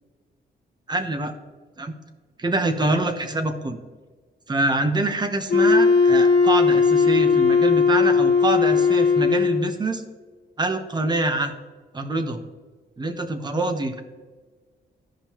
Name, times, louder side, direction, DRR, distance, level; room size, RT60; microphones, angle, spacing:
voice 1, 0.9-1.3 1.8-1.9 2.4-3.8 4.5-10.0 10.6-11.5 11.9-12.4 13.0-14.0, right 2 dB, 25° right, 7 dB, 0.9 m, -25 dB
Wind instrument woodwind instrument, 5.5-9.8, left 5 dB, 60° left, 1.1 m, -18 dB
13.5 x 5.2 x 2.9 m, 1.4 s
cardioid pair, 130°, 18 cm